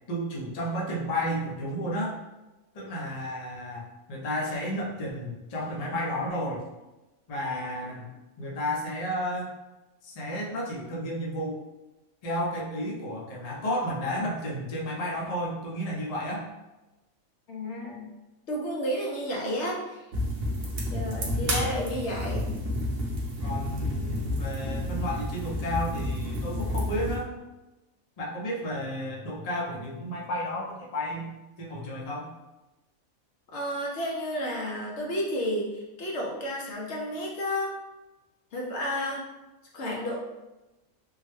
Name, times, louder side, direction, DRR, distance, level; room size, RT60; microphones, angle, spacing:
voice 1, 0.0-2.1 2.7-6.7 7.3-9.5 10.0-11.6 12.2-16.5 21.3-21.7 23.4-27.3 28.2-31.3 31.6-32.3, equal, 45° left, -3 dB, 0.5 m, -32 dB
voice 2, 17.5-18.1 18.5-20.0 20.9-22.5 33.5-37.8 38.5-39.2 39.7-40.2, equal, 65° left, -2 dB, 0.8 m, -31 dB
sound 1, 20.1-27.2, left 1 dB, 55° right, 0.7 m, -30 dB
3.6 x 2.1 x 3.0 m, 1.1 s
omnidirectional pair, 1.4 m